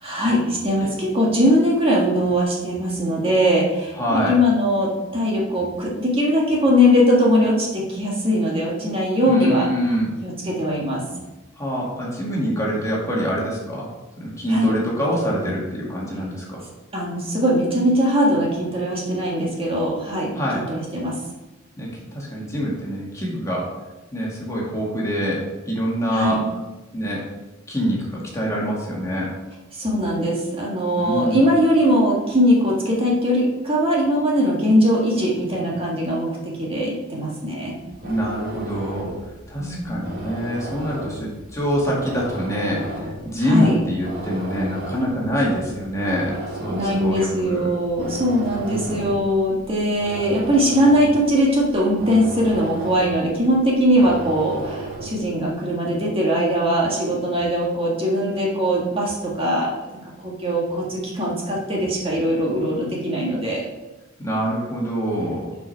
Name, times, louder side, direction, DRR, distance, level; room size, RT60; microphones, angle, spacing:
voice 1, 0.0-9.7 10.2-11.0 14.5-14.7 16.9-21.2 26.1-26.4 29.7-37.7 39.6-40.1 43.4-43.8 46.7-63.6, equal, 30° right, -4 dB, 1.7 m, -21 dB
voice 2, 4.0-4.4 9.3-10.1 11.6-13.9 14.2-16.6 20.3-20.6 21.8-23.7 24.1-26.4 26.9-27.2 27.7-29.3 31.0-31.4 38.0-39.1 39.5-47.7 48.6-49.1 64.2-65.6, equal, 15° left, -4 dB, 2.0 m, -25 dB
sound 1, 37.8-55.3, right 1 dB, 50° right, 1.8 m, -35 dB
7.5 x 4.9 x 5.6 m, 1.1 s
head